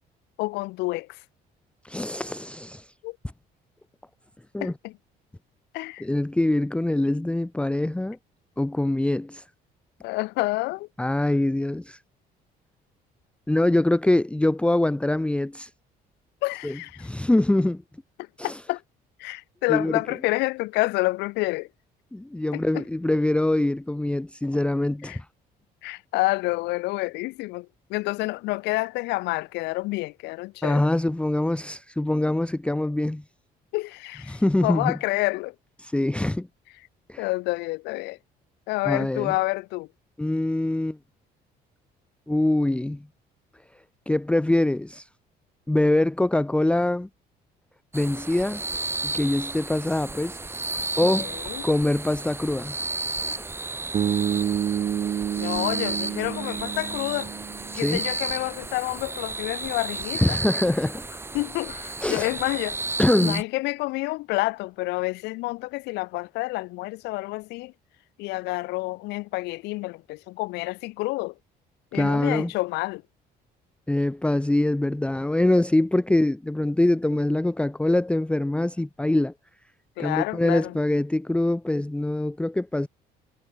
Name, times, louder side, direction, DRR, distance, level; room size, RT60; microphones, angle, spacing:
voice 1, 0.4-1.2 3.0-3.2 4.6-5.0 5.7-6.0 10.0-10.9 16.4-17.1 18.4-18.8 19.2-21.7 22.5-22.8 25.1-25.2 25.8-30.8 33.7-35.5 37.2-38.2 38.7-39.9 51.2-51.6 55.4-57.3 57.7-60.4 61.3-62.8 63.2-67.7 68.2-71.3 71.9-73.0 80.0-80.7, left 21 dB, 85° left, 0.5 m, -28 dB
voice 2, 1.8-2.9 4.5-4.7 6.0-8.2 8.6-9.4 11.0-12.0 13.5-15.7 16.6-17.8 18.4-18.6 19.7-20.0 22.1-25.3 30.6-33.2 34.3-35.0 35.8-36.5 37.1-37.3 38.8-39.3 40.2-41.0 42.3-43.1 44.1-45.1 45.7-47.1 47.9-48.6 49.0-50.4 51.0-51.3 51.6-52.8 53.2-53.5 57.7-58.0 60.2-61.0 62.0-62.3 63.0-63.4 71.9-72.5 73.9-79.3 80.0-82.9, left 1 dB, 5° left, 1.0 m, -24 dB
sound 1, 47.9-63.4, right 3 dB, 15° right, 1.0 m, -33 dB
Bass guitar, 53.9-58.0, right 9 dB, 40° right, 0.7 m, -28 dB
cardioid pair, 110°, 17 cm